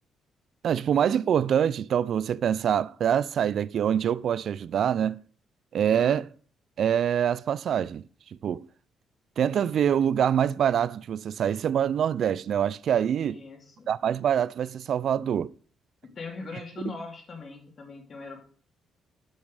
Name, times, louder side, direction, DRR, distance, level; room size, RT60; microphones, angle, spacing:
voice 1, 0.6-5.2 5.7-6.3 6.8-8.0 8.4-8.7 9.4-13.4 13.9-15.5, right 9 dB, 65° right, 0.3 m, -25 dB
voice 2, 13.2-13.9 16.0-18.5, left 4 dB, 45° left, 2.5 m, -40 dB
8.0 x 6.2 x 4.8 m
cardioid pair, 90°, 0 cm